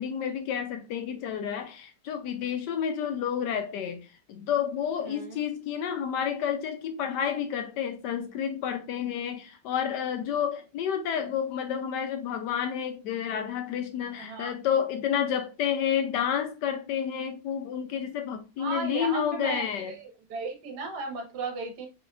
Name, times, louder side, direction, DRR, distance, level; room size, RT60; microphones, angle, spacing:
voice 1, 0.0-19.9, left 8 dB, 80° left, 1.2 m, -30 dB
voice 2, 5.0-5.4 14.2-14.5 18.6-19.6 20.3-21.9, right 4 dB, 70° right, 1.7 m, -35 dB
4.9 x 4.5 x 2.3 m
omnidirectional pair, 1.9 m